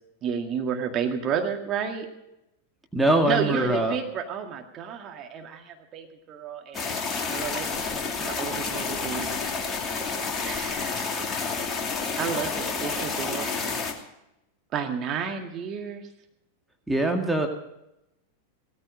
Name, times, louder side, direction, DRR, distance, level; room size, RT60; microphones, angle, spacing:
voice 1, 0.2-2.1 3.3-7.0 7.3-9.3 10.4-11.3 12.2-13.8 14.7-16.1, right 7 dB, 30° right, 3 dB, 2.0 m, -31 dB
voice 2, 2.9-4.0 16.9-17.5, right 1 dB, 5° right, 3 dB, 2.0 m, -22 dB
sound 1, 6.7-13.9, left 4 dB, 20° left, 2.6 m, -30 dB
17.0 x 14.0 x 5.3 m, 0.86 s
figure-of-eight pair, 90°, 0 cm